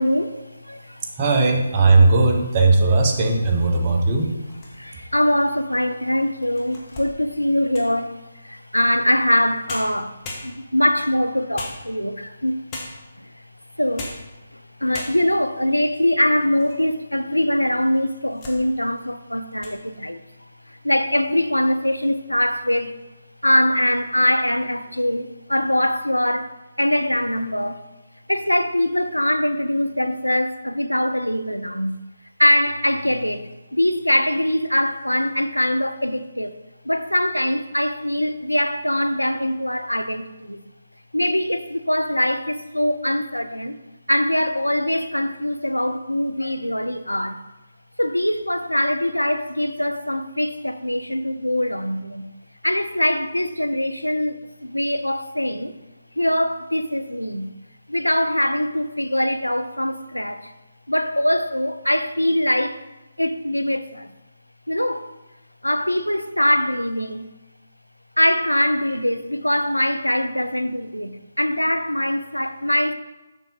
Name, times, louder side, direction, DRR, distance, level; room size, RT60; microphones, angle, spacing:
voice 1, 0.0-1.1 3.8-4.0 4.7-12.8 13.2-13.4 13.8-14.1 14.5-20.2 20.7-22.9 23.4-27.8 28.3-32.0 32.4-36.5 36.8-40.6 41.1-43.8 44.1-47.4 48.0-52.3 52.6-55.8 56.2-57.5 57.9-60.5 60.9-62.8 63.2-64.1 64.7-65.1 65.6-67.3 68.2-72.9, left 1 dB, 90° left, 0.5 m, -22 dB
voice 2, 1.2-4.3, right 3 dB, 25° right, 1.0 m, -17 dB
sound 1, 4.4-5.1 5.7-5.8 6.4-8.0 9.3-9.4 9.7-10.9 11.5-12.2 12.7-13.2 13.8-14.3 14.6-14.7 14.9-15.5 16.0-16.8 17.1-17.2 17.9-18.6 19.0-19.2 19.5-19.8, left 2 dB, 20° left, 1.3 m, -38 dB
7.0 x 5.7 x 3.8 m
figure-of-eight pair, 145°, 0 cm